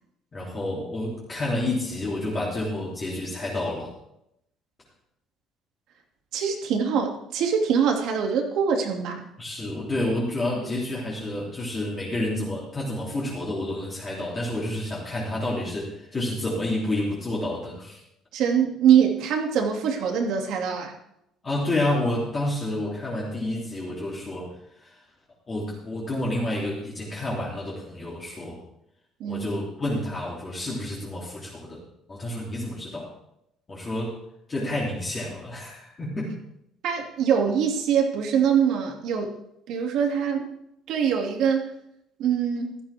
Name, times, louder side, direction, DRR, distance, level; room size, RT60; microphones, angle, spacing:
voice 1, 0.3-3.9 9.4-18.0 21.4-24.5 24.8-24.9 25.5-28.6 29.3-31.8 32.1-33.1 33.7-34.1 34.5-36.3, left 1 dB, 20° left, -6 dB, 3.1 m, -29 dB
voice 2, 6.3-9.2 18.3-20.9 29.2-29.5 36.8-39.3 39.7-40.6 40.9-41.7 42.2-42.8, right 7 dB, 65° right, 2 dB, 2.5 m, -23 dB
15.5 x 13.0 x 3.6 m, 0.79 s
cardioid pair, 165°, 0 cm